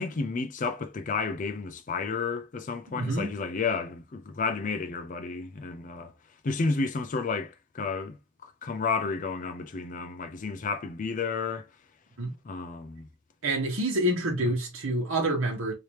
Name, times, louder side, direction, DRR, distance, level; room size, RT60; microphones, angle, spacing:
voice 1, 0.0-6.1 6.4-8.2 8.4-11.7 12.4-13.1, left 4 dB, 40° left, 0.4 m, -31 dB
voice 2, 2.9-3.3 12.2-12.3 13.4-15.7, right 1 dB, 65° right, 1.2 m, -27 dB
3.2 x 2.9 x 3.1 m
head